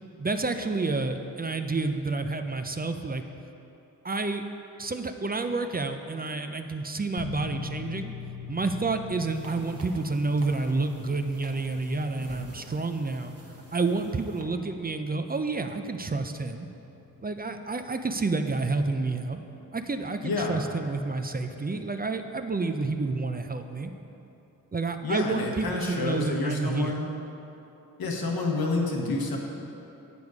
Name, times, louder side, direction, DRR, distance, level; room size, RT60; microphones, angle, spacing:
voice 1, 0.2-3.2 4.0-4.4 4.8-8.1 8.5-13.3 13.7-16.7 17.2-19.4 19.7-23.9 24.7-27.0, right 3 dB, 25° right, 7 dB, 0.5 m, -29 dB
sound 1, 7.2-23.9, left 7 dB, 50° left, 0.7 m, -45 dB
sound 2, 9.2-14.4, right 2 dB, 40° right, 1.2 m, -50 dB
voice 2, 20.2-20.6 25.0-27.1 28.0-29.4, left 3 dB, 90° left, 0 dB, 1.1 m, -28 dB
8.1 x 6.9 x 4.8 m, 2.9 s
cardioid pair, 65°, 35 cm